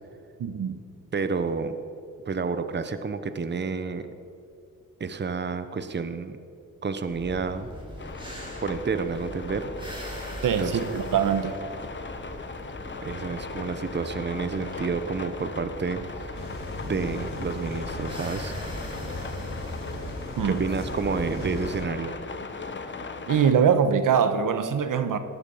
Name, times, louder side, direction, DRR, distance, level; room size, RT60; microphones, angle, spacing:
voice 1, 0.4-0.8 10.4-11.6 20.4-20.6 23.3-25.2, right 7 dB, 75° right, 10 dB, 1.2 m, -23 dB
voice 2, 1.1-1.7 2.2-4.1 5.0-6.4 6.8-7.7 8.6-9.7 10.6-11.0 13.0-16.0 16.8-18.5 20.4-22.1, right 4 dB, 35° right, 11 dB, 1.0 m, -30 dB
sound 1, 7.1-21.7, equal, 15° right, 5.0 m, -40 dB
sound 2, 8.0-23.5, left 4 dB, 35° left, 1.4 m, -39 dB
sound 3, 16.3-21.8, left 2 dB, 85° left, 3.0 m, -38 dB
19.0 x 11.5 x 5.7 m, 2.6 s
cardioid pair, 85°, 32 cm